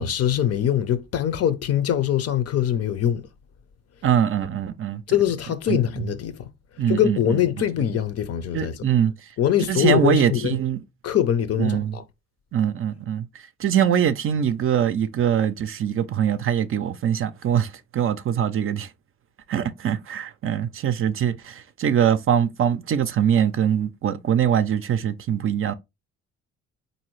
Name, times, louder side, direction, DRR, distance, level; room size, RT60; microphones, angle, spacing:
voice 1, 0.0-3.3 5.1-6.5 6.7-8.9 9.4-10.6 11.0-12.0, left 10 dB, 55° left, 0.6 m, -23 dB
voice 2, 4.0-5.0 5.7-5.8 6.8-7.2 8.5-9.1 9.7-10.8 11.6-11.9 12.5-13.2 13.6-18.9 19.5-25.7, right 9 dB, 45° right, 0.4 m, -22 dB
3.9 x 2.7 x 3.0 m
cardioid pair, 90°, 30 cm